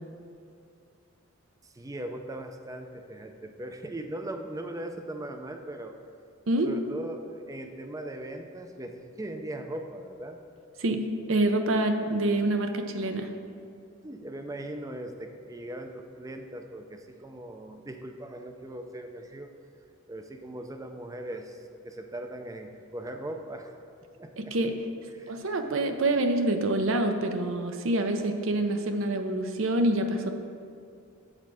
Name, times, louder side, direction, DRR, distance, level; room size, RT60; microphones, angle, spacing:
voice 1, 1.6-6.0 6.6-10.4 14.0-19.5 20.1-23.7 24.2-24.5 25.1-25.4, right 1 dB, 15° right, 6 dB, 0.4 m, -39 dB
voice 2, 11.3-13.3 24.4-24.7 25.3-30.3, right 2 dB, 65° right, 6 dB, 0.6 m, -26 dB
7.4 x 4.5 x 6.2 m, 2.4 s
head